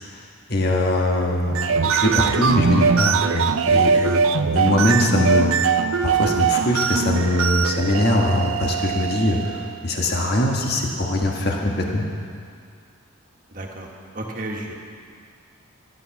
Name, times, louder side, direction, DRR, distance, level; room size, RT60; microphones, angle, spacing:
voice 1, 0.5-4.2 4.5-5.7 6.0-12.0, left 1 dB, 50° left, 0 dB, 1.5 m, -22 dB
sound 1, 1.4-9.7, right 6 dB, 75° right, 0.5 m, -21 dB
voice 2, 13.5-14.7, right 1 dB, 40° right, 0 dB, 1.6 m, -33 dB
14.0 x 11.0 x 5.9 m, 2.2 s
head